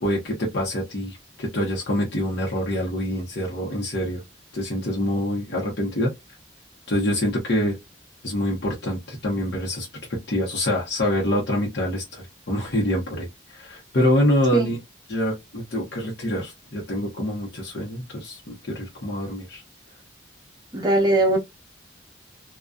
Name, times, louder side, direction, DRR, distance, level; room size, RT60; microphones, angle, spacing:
voice 1, 0.0-4.2 4.5-6.1 6.9-7.8 8.2-14.8 15.1-19.6, left 1 dB, 65° left, 0.8 m, -26 dB
voice 2, 20.7-21.4, right 1 dB, 25° right, 0.6 m, -20 dB
2.4 x 2.2 x 2.2 m
head